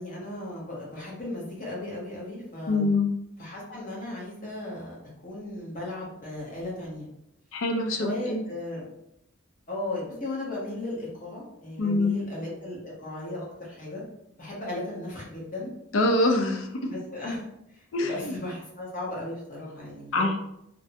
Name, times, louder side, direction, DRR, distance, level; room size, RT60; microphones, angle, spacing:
voice 1, 0.0-3.0 3.4-4.9 5.2-7.1 8.0-8.9 9.7-14.0 14.4-15.7 16.9-17.4 17.7-20.3, left 1 dB, 40° left, -5 dB, 0.8 m, -36 dB
voice 2, 2.7-3.1 7.5-8.4 11.8-12.1 15.9-16.9 17.9-18.3 20.1-20.4, left 2 dB, 70° left, 3 dB, 0.4 m, -25 dB
2.6 x 2.1 x 2.7 m, 0.80 s
head